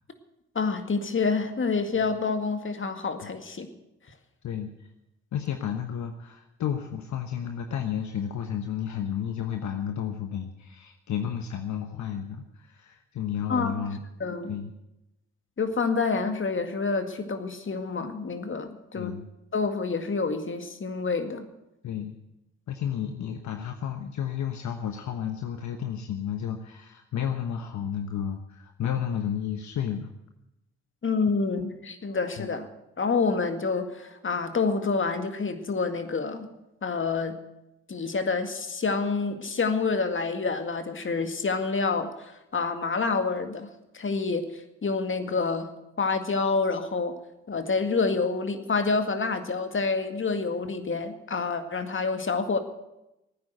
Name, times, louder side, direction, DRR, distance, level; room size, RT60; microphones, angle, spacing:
voice 1, 0.6-3.7 13.5-13.8 14.2-14.6 15.6-19.2 19.5-21.5 31.0-32.7 33.0-36.5 36.8-37.4 37.9-45.7 46.0-47.2 47.5-52.6, left 4 dB, 40° left, 7 dB, 2.1 m, -28 dB
voice 2, 4.4-4.9 5.3-14.0 14.5-14.7 18.9-19.3 21.8-22.2 22.7-30.1 32.4-32.5, left 9 dB, 65° left, 6 dB, 1.1 m, -32 dB
16.5 x 9.6 x 8.0 m, 0.90 s
hypercardioid pair, 45°, 32 cm